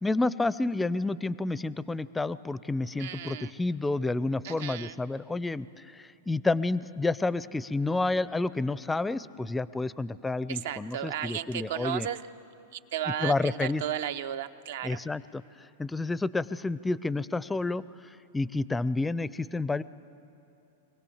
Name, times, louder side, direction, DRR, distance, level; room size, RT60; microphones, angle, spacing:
voice 1, 0.0-12.1 13.2-13.8 14.8-19.8, left 2 dB, 10° left, 18 dB, 0.5 m, -30 dB
voice 2, 3.0-3.5 4.4-4.9 10.5-12.2 12.7-15.0, right 11 dB, 65° right, 11 dB, 0.7 m, -34 dB
25.0 x 18.0 x 7.2 m, 2.8 s
hypercardioid pair, 110°, 0 cm